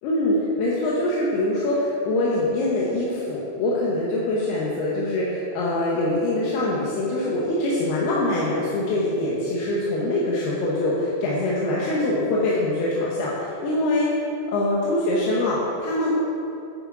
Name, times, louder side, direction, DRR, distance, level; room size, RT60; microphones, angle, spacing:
voice 1, 0.0-14.1 14.5-16.1, left 1 dB, 85° left, -5 dB, 3.1 m, -24 dB
9.7 x 7.3 x 4.8 m, 2.8 s
omnidirectional pair, 4.4 m